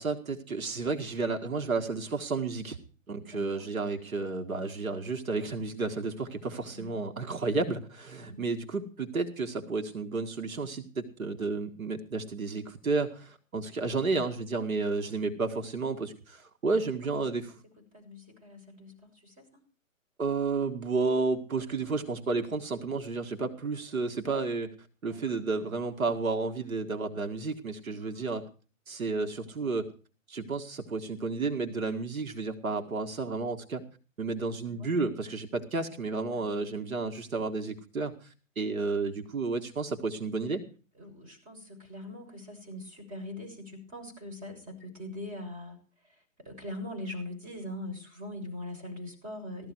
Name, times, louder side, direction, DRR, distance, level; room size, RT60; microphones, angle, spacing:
voice 1, 0.0-2.8 3.1-17.5 20.2-24.7 25.0-28.5 28.9-29.9 30.3-33.8 34.2-40.6, right 4 dB, 85° right, 5 dB, 2.0 m, -32 dB
voice 2, 3.2-3.6 6.6-7.0 8.2-8.5 14.9-15.2 16.6-16.7 17.9-19.5 25.0-25.2 28.0-28.4 34.6-34.9 36.3-37.0 41.0-45.8 46.0-49.7, left 1 dB, 20° right, 1 dB, 6.7 m, -42 dB
16.5 x 13.5 x 4.7 m, 0.38 s
hypercardioid pair, 140°, 41 cm